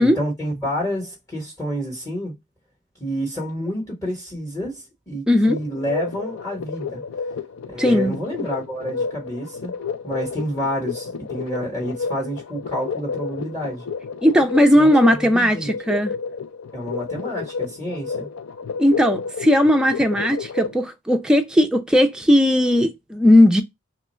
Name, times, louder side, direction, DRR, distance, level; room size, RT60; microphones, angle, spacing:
voice 1, 0.0-2.3 3.0-7.0 7.7-9.7 10.0-13.8 14.7-14.9 15.2-15.7 16.7-18.3, equal, 15° left, 1.0 m, -29 dB
voice 2, 5.3-5.6 7.8-8.2 14.2-16.1 18.8-23.6, left 1 dB, 5° right, 0.3 m, -17 dB
sound 1, 5.4-20.8, left 5 dB, 80° left, 0.4 m, -31 dB
3.0 x 2.3 x 4.2 m
head